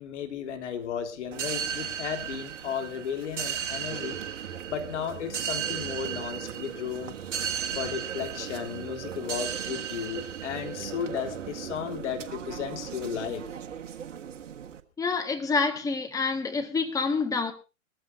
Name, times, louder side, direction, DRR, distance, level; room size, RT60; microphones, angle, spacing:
voice 1, 0.0-4.2 4.7-7.2 7.8-13.4, left 8 dB, 60° left, 3.5 m, -34 dB
sound 1, 1.3-14.8, right 8 dB, 60° right, 1.6 m, -35 dB
voice 2, 15.0-17.5, left 4 dB, 10° left, 1.8 m, -27 dB
22.5 x 14.5 x 2.8 m
hypercardioid pair, 125°, 40 cm